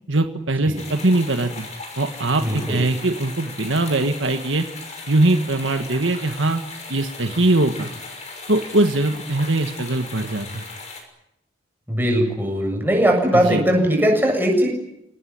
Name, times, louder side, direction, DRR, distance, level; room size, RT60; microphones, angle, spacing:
voice 1, 0.1-1.7 2.0-4.7 5.1-6.6 6.9-7.9 8.5-10.6 13.3-13.6, right 2 dB, 70° right, 6 dB, 1.7 m, -21 dB
sound 1, 0.8-11.0, left 3 dB, 35° left, 6.3 m, -37 dB
voice 2, 2.4-2.8 11.9-14.7, equal, 10° right, 1 dB, 7.3 m, -19 dB
27.0 x 19.0 x 9.7 m, 0.83 s
head